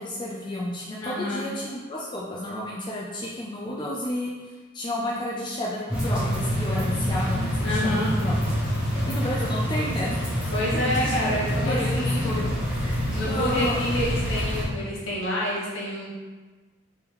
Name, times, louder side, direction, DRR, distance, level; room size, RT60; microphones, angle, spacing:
voice 1, 0.0-4.3 4.7-8.3 9.1-10.4 10.7-11.1 11.6-13.0 13.3-13.8, left 1 dB, 20° left, -4 dB, 0.3 m, -31 dB
voice 2, 1.0-1.5 7.6-8.1 10.5-12.4 13.1-16.1, left 1 dB, 70° left, -5 dB, 1.1 m, -28 dB
sound 1, 5.9-14.6, equal, 5° right, 1.0 m, -26 dB
3.6 x 3.3 x 3.0 m, 1.3 s
head